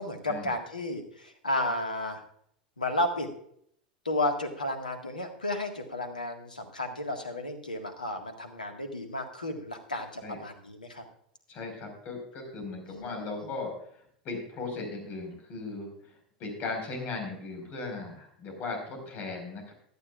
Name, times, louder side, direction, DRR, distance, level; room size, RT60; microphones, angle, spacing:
voice 1, 0.0-2.2 2.8-3.3 4.0-11.0 12.9-13.5, left 1 dB, 80° left, 5 dB, 1.8 m, -33 dB
voice 2, 11.5-19.7, left 3 dB, 40° left, 3 dB, 5.0 m, -38 dB
17.0 x 12.0 x 2.5 m, 0.67 s
figure-of-eight pair, 85°, 4 cm